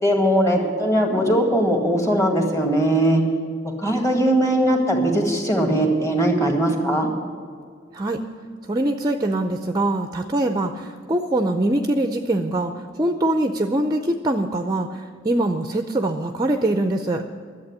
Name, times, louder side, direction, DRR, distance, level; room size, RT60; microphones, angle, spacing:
voice 1, 0.0-3.2 3.8-7.1, right 1 dB, 15° left, 2 dB, 1.9 m, -20 dB
voice 2, 7.9-8.2 8.7-17.2, right 1 dB, 20° right, 7 dB, 0.5 m, -23 dB
11.5 x 8.0 x 9.6 m, 2.1 s
head